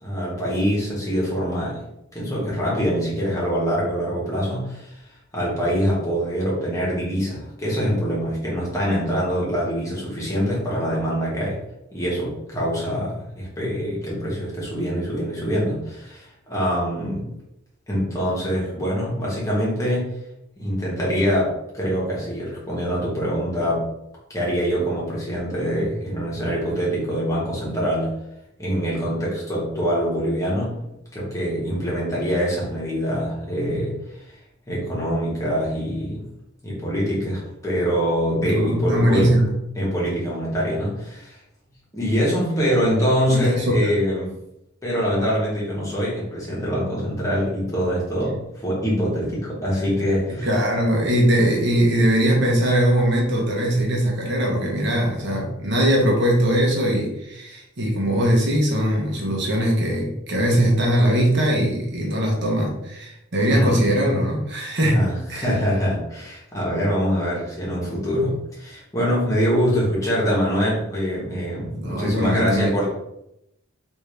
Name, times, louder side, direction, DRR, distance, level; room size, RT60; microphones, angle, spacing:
voice 1, 0.0-1.8 2.1-4.9 5.3-11.6 11.9-17.3 17.9-20.1 20.6-23.9 24.3-28.1 28.6-30.7 31.1-34.0 34.7-36.3 36.6-39.3 39.7-41.4 41.9-44.3 44.8-50.5 63.5-63.8 64.9-72.8, equal, 15° left, -6 dB, 1.2 m, -24 dB
voice 2, 38.4-39.5 43.3-43.9 49.8-49.9 50.4-65.0 65.3-65.5 71.7-72.7, equal, 60° right, -1 dB, 0.9 m, -21 dB
3.5 x 2.7 x 3.3 m, 0.83 s
head